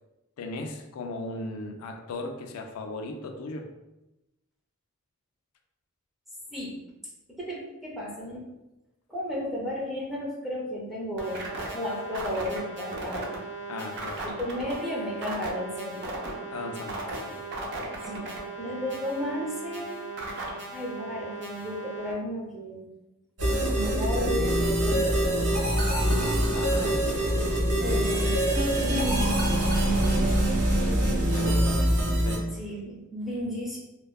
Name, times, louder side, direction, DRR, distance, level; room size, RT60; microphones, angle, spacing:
voice 1, 0.4-3.7 13.7-14.2 16.5-17.4 26.5-27.0 30.7-31.8 32.2-32.5, left 2 dB, 75° left, 5 dB, 0.3 m, -37 dB
voice 2, 7.4-8.4 9.1-11.4 11.7-13.3 14.2-16.1 18.0-20.0 20.7-22.9 23.4-25.5 27.8-28.5 28.8-30.6 31.4-31.9 32.6-33.8, equal, ahead, -5 dB, 0.5 m, -34 dB
sound 1, 11.2-22.1, right 2 dB, 55° right, 0.5 m, -37 dB
sound 2, 23.4-32.4, right 1 dB, 80° right, 1.0 m, -24 dB
2.6 x 2.1 x 2.2 m, 0.97 s
head